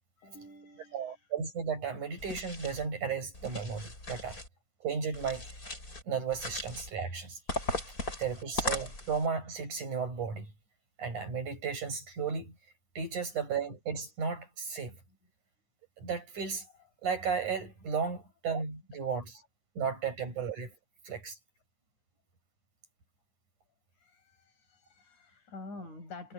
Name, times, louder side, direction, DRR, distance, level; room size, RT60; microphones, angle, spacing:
voice 1, 0.2-1.3 7.9-8.5 23.9-26.3, left 3 dB, 85° left, 7.7 m, -49 dB
voice 2, 0.9-4.4 4.8-5.5 6.1-7.4 8.2-10.5 11.0-12.5 13.0-15.0 16.0-16.7 17.0-19.3 19.8-20.7 21.1-21.4, right 6 dB, 90° right, 8.8 m, -34 dB
sound 1, 2.2-2.8 3.3-4.5 5.1-6.0 6.3-6.9 7.5-9.3, left 1 dB, 25° left, 6.9 m, -37 dB
omnidirectional pair, 3.4 m